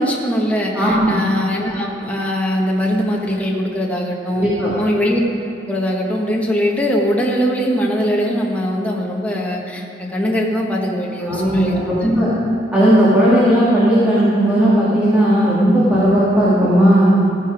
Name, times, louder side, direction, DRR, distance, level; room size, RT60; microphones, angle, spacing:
voice 1, 0.0-4.5 4.8-5.2 5.7-12.0, equal, 10° left, -3 dB, 1.5 m, -21 dB
voice 2, 0.7-1.1 4.3-4.7 11.2-12.3 12.7-17.1, equal, 10° right, -10 dB, 2.4 m, -15 dB
15.5 x 10.0 x 4.9 m, 2.8 s
head